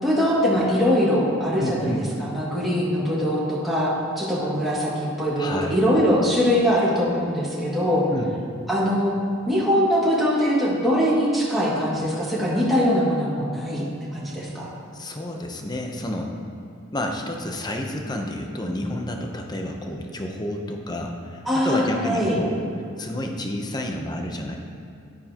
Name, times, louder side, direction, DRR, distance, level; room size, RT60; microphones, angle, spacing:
voice 1, 0.0-1.9 2.2-3.9 4.2-8.0 8.7-9.1 9.5-13.8 14.1-14.7 21.5-22.4, equal, ahead, -8 dB, 2.1 m, -22 dB
voice 2, 1.6-2.0 5.4-5.8 8.1-8.3 14.9-16.3 16.9-22.5 23.0-24.6, left 1 dB, 20° left, 2 dB, 0.7 m, -30 dB
11.0 x 9.3 x 2.9 m, 2.6 s
head